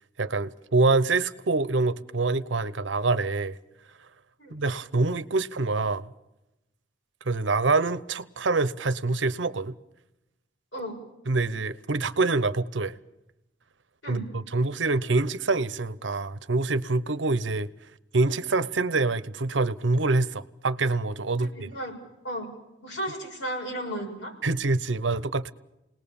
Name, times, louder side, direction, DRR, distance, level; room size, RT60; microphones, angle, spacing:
voice 1, 0.2-3.6 4.5-6.1 7.2-9.7 11.3-13.0 14.1-17.7 18.1-21.7 24.4-25.5, right 3 dB, 80° right, 0.9 m, -25 dB
voice 2, 21.4-21.9 22.2-22.5 22.8-24.3, right 1 dB, 80° left, 7.0 m, -34 dB
29.0 x 19.5 x 7.1 m
head